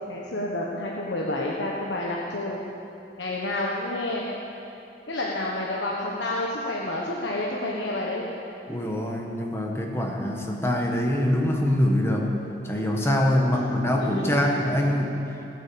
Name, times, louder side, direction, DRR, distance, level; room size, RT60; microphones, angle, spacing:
voice 1, 0.1-2.6 3.2-4.3 5.1-8.4 13.5-14.6, left 1 dB, 80° left, -3 dB, 1.4 m, -30 dB
voice 2, 8.7-12.3 12.6-15.2, left 1 dB, 15° left, 0 dB, 1.5 m, -24 dB
19.0 x 9.2 x 7.1 m, 2.9 s
head